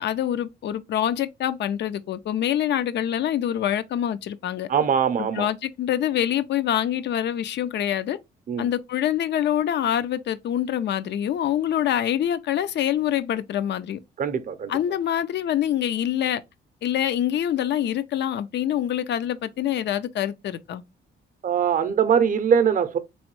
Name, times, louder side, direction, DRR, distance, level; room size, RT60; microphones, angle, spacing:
voice 1, 0.0-4.7 5.2-8.2 8.6-14.0 14.7-16.4 16.8-20.8, left 10 dB, 60° left, 0.5 m, -25 dB
voice 2, 4.7-5.5 8.5-8.7 14.2-14.7 21.4-23.0, right 7 dB, 40° right, 0.6 m, -22 dB
3.5 x 3.1 x 3.0 m
cardioid pair, 90°, 20 cm